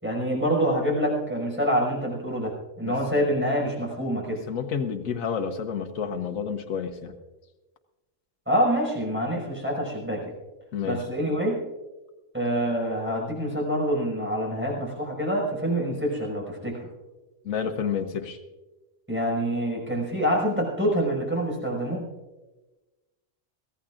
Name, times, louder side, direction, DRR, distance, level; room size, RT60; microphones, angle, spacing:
voice 1, 0.0-4.4 8.5-10.3 10.8-11.6 12.3-16.9 19.1-22.1, equal, 10° right, -2 dB, 5.6 m, -26 dB
voice 2, 2.8-3.2 4.3-7.1 10.7-11.0 17.4-18.4, left 7 dB, 90° left, 6 dB, 1.3 m, -30 dB
23.5 x 16.5 x 2.5 m, 1.1 s
omnidirectional pair, 1.4 m